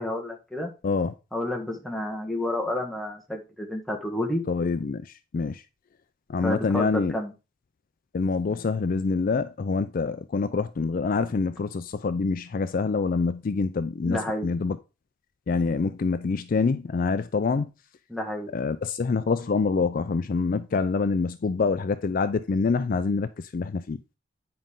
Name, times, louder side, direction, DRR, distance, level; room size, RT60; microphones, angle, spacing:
voice 1, 0.0-0.7 1.3-4.4 6.4-7.3 14.0-14.5 18.1-18.5, left 1 dB, ahead, 1.5 m, -30 dB
voice 2, 0.8-1.1 4.5-5.0 5.3-5.6 6.3-7.2 8.1-14.8 15.5-17.7 18.5-24.0, left 4 dB, 45° left, 0.4 m, -26 dB
9.4 x 5.2 x 3.8 m
head